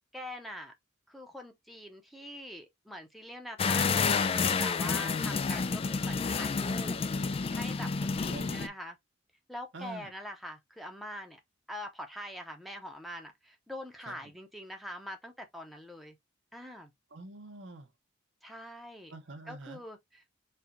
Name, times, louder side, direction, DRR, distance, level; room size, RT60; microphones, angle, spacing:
voice 1, 0.1-0.7 1.1-7.0 7.5-9.0 9.5-11.4 11.7-16.1 16.5-16.9 18.4-19.1 19.5-20.4, equal, ahead, 0.8 m, -44 dB
sound 1, 3.6-8.7, left 5 dB, 30° left, 0.3 m, -29 dB
voice 2, 8.2-8.7 9.7-10.1 14.0-14.2 17.1-17.9 19.1-19.8, right 2 dB, 65° right, 0.8 m, -45 dB
4.4 x 2.4 x 3.7 m
head